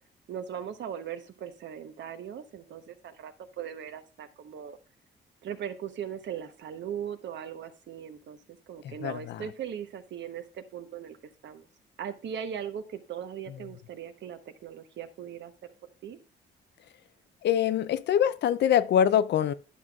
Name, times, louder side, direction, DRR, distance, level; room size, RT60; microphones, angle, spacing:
voice 1, 0.3-4.8 5.4-11.2 11.4-11.7 12.0-15.7 16.0-16.2, right 8 dB, 65° right, 1.0 m, -39 dB
voice 2, 9.0-9.4 17.4-19.5, left 9 dB, 60° left, 0.5 m, -24 dB
11.0 x 6.0 x 2.3 m
cardioid pair, 90°, 20 cm